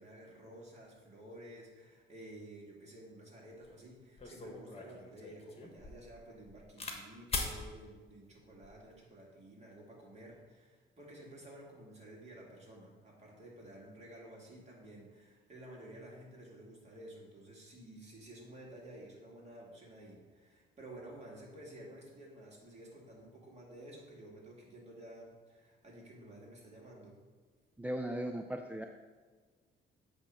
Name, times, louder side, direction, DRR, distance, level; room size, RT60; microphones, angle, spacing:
voice 1, 0.0-27.2, right 1 dB, 35° right, -3 dB, 2.3 m, -52 dB
sound 1, 3.6-3.7 4.2-7.0 7.3-7.6 8.4-8.8, left 3 dB, 30° left, 1.2 m, -41 dB
voice 2, 27.8-28.9, right 1 dB, 5° right, 4 dB, 0.4 m, -37 dB
8.3 x 3.0 x 6.2 m, 1.4 s
cardioid pair, 90°, 20 cm